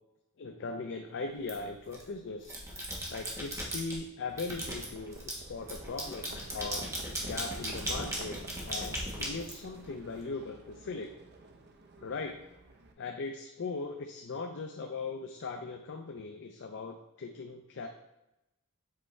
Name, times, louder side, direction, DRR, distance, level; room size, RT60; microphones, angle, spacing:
voice 1, 0.4-2.5 3.1-6.9 7.2-8.4 8.6-11.1 12.0-12.4 13.0-17.9, left 4 dB, 55° left, 4 dB, 0.5 m, -39 dB
sound 1, 1.5-2.0 2.4-4.0 4.4-10.1, right 1 dB, 15° right, 1.3 m, -38 dB
Livestock farm animals working animals, 4.3-12.9, right 2 dB, 50° right, 0.6 m, -50 dB
7.5 x 4.5 x 3.2 m, 0.92 s
head